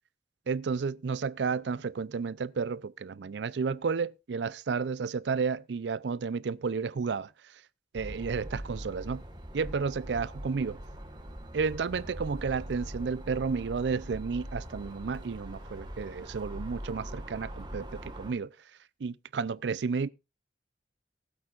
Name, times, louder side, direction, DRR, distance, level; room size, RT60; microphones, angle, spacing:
voice 1, 0.5-7.6 7.9-9.2 9.5-10.8 11.5-18.6 19.0-20.1, right 5 dB, 90° right, 0.5 m, -32 dB
sound 1, 8.0-18.3, equal, 25° right, 1.6 m, -42 dB
19.5 x 8.1 x 2.4 m
head